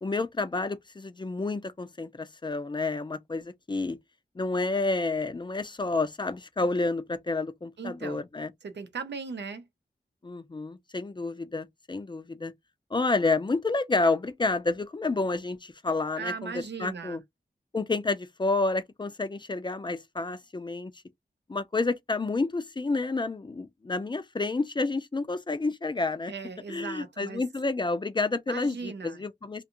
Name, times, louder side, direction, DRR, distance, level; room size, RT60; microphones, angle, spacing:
voice 1, 0.0-4.0 4.4-8.5 10.2-12.5 12.9-17.2 17.7-20.9 21.5-26.3 26.7-29.6, left 3 dB, 25° left, 0.4 m, -29 dB
voice 2, 7.8-8.2 8.6-9.6 16.2-17.2 26.3-27.4 28.5-29.2, right 5 dB, 85° right, 0.6 m, -38 dB
2.5 x 2.3 x 2.8 m
wide cardioid pair, 80°, 18 cm